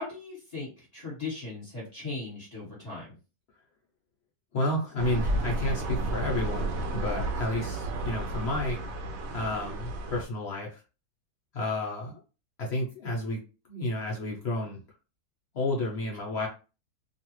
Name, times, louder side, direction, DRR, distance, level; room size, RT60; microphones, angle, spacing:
voice 1, 0.0-3.1, left 3 dB, 25° left, -5 dB, 1.4 m, -38 dB
voice 2, 4.5-8.8 9.3-10.8 11.5-12.2 12.6-13.4 13.7-14.8 15.5-16.5, left 1 dB, 55° left, -1 dB, 0.8 m, -31 dB
sound 1, 5.0-10.2, right 1 dB, 70° right, 0.9 m, -32 dB
2.6 x 2.3 x 3.0 m, 0.33 s
omnidirectional pair, 1.7 m